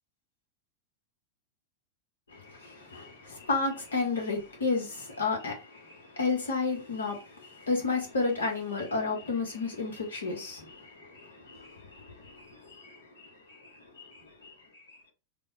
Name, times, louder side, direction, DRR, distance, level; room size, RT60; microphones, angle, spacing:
voice 1, 2.3-13.6 14.0-14.5, left 4 dB, 70° left, 1.0 m, -32 dB
3.3 x 2.1 x 2.6 m
figure-of-eight pair, 90°, 0 cm